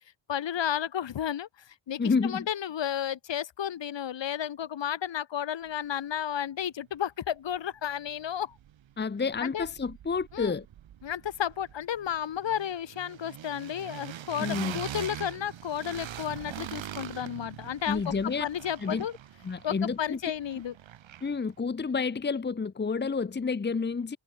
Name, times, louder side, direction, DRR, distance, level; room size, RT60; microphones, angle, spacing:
voice 1, 0.3-8.6 9.4-9.7 10.3-10.5 11.0-19.1 19.6-20.7, left 9 dB, 75° left, 4.3 m, -32 dB
voice 2, 2.0-2.5 9.0-10.7 14.4-14.8 17.9-18.5 18.8-19.1 19.4-20.3 21.2-24.2, left 5 dB, 25° left, 1.1 m, -29 dB
sound 1, 7.5-7.6 7.9-9.0 9.3-21.5, right 11 dB, 85° right, 3.0 m, -43 dB
wide cardioid pair, 120°, 45 cm